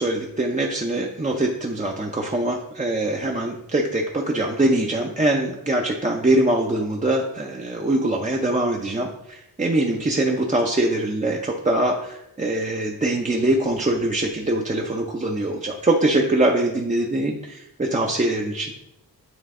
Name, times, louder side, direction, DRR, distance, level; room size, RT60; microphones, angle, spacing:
voice 1, 0.0-18.7, right 1 dB, 20° right, 0 dB, 0.6 m, -23 dB
8.8 x 3.2 x 3.6 m, 0.83 s
wide cardioid pair, 90°, 37 cm